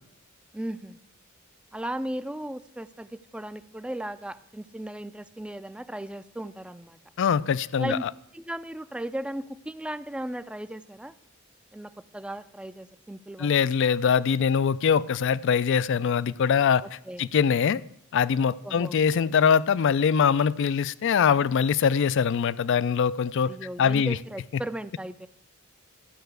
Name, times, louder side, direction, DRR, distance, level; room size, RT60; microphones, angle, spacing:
voice 1, 0.5-1.0 1.7-7.0 7.8-8.1 8.3-11.1 11.7-13.5 16.8-17.3 18.6-19.0 23.4-25.3, right 1 dB, 5° right, 13 dB, 0.4 m, -36 dB
voice 2, 7.2-8.1 13.4-16.8 17.2-17.8 18.1-23.5 23.8-24.2, left 7 dB, 60° left, 19 dB, 0.4 m, -23 dB
13.0 x 5.6 x 7.9 m, 0.75 s
head